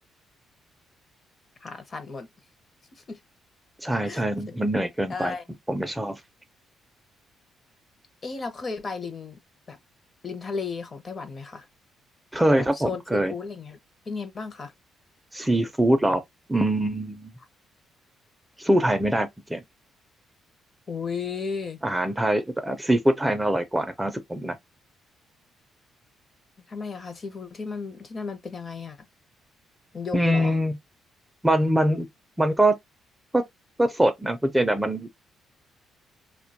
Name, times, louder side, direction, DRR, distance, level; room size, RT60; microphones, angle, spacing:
voice 1, 1.6-2.3 3.1-3.2 4.1-4.6 5.1-5.4 8.2-9.4 9.7-9.8 10.2-11.7 12.6-13.8 14.1-14.7 20.9-21.8 26.7-29.0 29.9-30.6, left 5 dB, 40° left, 0.6 m, -34 dB
voice 2, 3.8-5.3 5.7-6.2 12.3-13.3 15.3-16.2 16.5-17.3 18.6-19.6 21.8-24.6 30.1-30.8 31.4-32.1 32.4-32.7 33.3-33.4 33.8-35.1, right 1 dB, 10° right, 0.4 m, -23 dB
2.2 x 2.2 x 2.6 m
cardioid pair, 90°, 0 cm